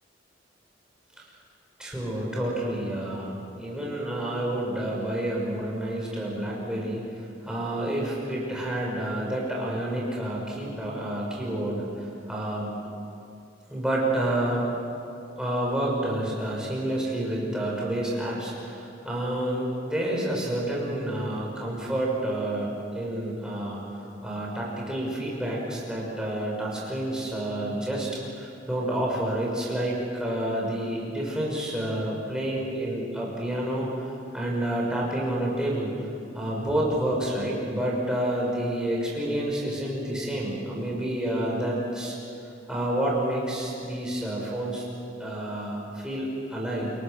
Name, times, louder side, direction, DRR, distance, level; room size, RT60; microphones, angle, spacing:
voice 1, 1.8-7.0 7.4-12.7 13.7-14.7 15.4-28.1 28.3-35.9 36.3-42.2 42.7-44.9 45.2-46.9, right 1 dB, 5° right, -4 dB, 6.2 m, -29 dB
29.5 x 23.0 x 6.8 m, 2.7 s
head